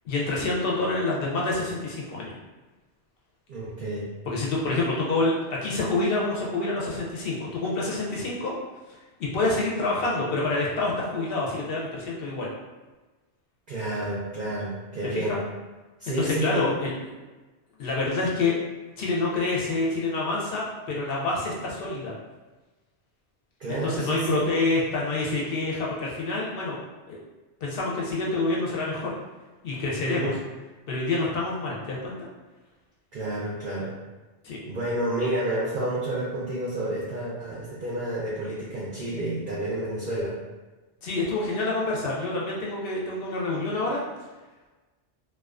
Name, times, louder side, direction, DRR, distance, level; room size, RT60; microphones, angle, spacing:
voice 1, 0.0-2.3 4.3-8.5 8.9-12.5 15.1-15.4 16.1-17.1 17.8-18.6 19.0-22.1 23.7-26.8 27.1-27.2 27.6-29.1 29.6-30.3 30.9-32.3 34.4-34.6 41.0-44.0, left 2 dB, 65° left, -4 dB, 0.7 m, -27 dB
voice 2, 3.5-4.1 13.7-15.4 16.0-16.7 23.6-24.4 30.0-30.4 33.1-33.9 34.7-40.4, right 1 dB, 55° right, -7 dB, 0.6 m, -30 dB
2.3 x 2.3 x 2.3 m, 1.2 s
omnidirectional pair, 1.2 m